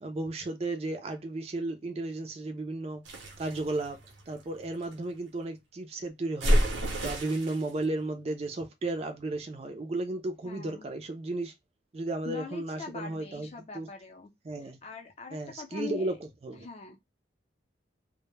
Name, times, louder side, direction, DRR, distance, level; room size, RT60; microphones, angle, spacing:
voice 1, 0.0-3.0 3.4-4.0 4.3-6.7 7.0-11.5 11.9-13.9 14.4-14.8 15.3-16.2 16.4-16.7, right 2 dB, 30° right, 0.3 m, -34 dB
sound 1, 3.1-4.9 6.4-7.7, equal, 80° right, 0.6 m, -29 dB
voice 2, 10.4-10.9 12.2-14.3 14.6-16.1 16.6-17.0, left 4 dB, 35° left, 0.4 m, -42 dB
2.0 x 2.0 x 3.0 m
head